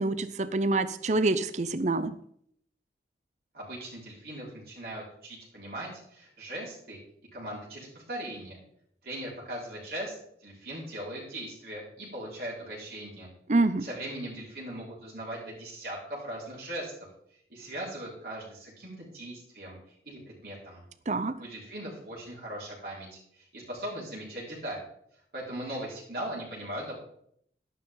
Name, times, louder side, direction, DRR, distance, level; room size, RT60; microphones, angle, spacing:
voice 1, 0.0-2.1 13.5-13.9 21.1-21.3, right 2 dB, 40° right, 13 dB, 0.6 m, -26 dB
voice 2, 3.5-7.0 7.3-8.6 9.0-10.1 10.4-13.3 13.8-16.9 17.5-19.8 20.0-20.8 21.4-24.8 25.3-27.0, right 1 dB, 55° right, -5 dB, 5.0 m, -39 dB
12.5 x 12.0 x 3.9 m, 0.68 s
head